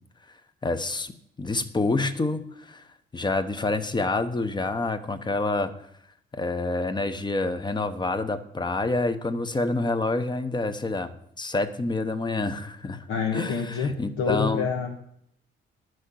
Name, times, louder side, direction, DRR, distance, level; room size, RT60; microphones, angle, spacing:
voice 1, 0.6-1.1 1.4-2.8 3.1-5.7 6.3-13.1 13.3-14.7, left 3 dB, 20° left, 9 dB, 0.9 m, -27 dB
voice 2, 13.1-15.0, left 5 dB, 85° left, 0 dB, 1.3 m, -27 dB
11.0 x 6.4 x 6.3 m, 0.72 s
cardioid pair, 90°, 20 cm